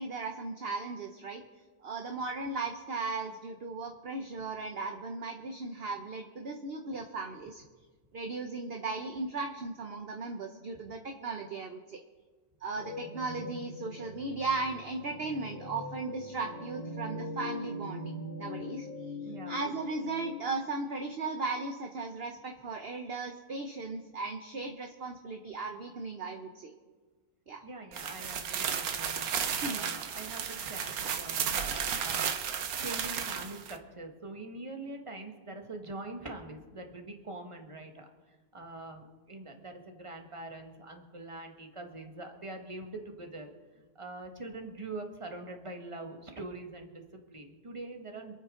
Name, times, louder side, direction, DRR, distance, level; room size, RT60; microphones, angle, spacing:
voice 1, 0.0-1.4 1.8-7.6 8.1-12.0 12.6-18.1 18.4-18.9 19.5-26.7 27.5-27.6 29.6-29.9, right 3 dB, 45° right, 4 dB, 1.0 m, -37 dB
sound 1, 12.8-20.4, left 2 dB, 40° left, 2.4 m, -41 dB
voice 2, 19.2-19.6 27.6-48.3, right 2 dB, 20° right, 4 dB, 1.5 m, -44 dB
sound 2, 27.9-33.7, right 7 dB, 75° right, 1.4 m, -33 dB
27.0 x 9.1 x 3.8 m, 1.4 s
omnidirectional pair, 1.6 m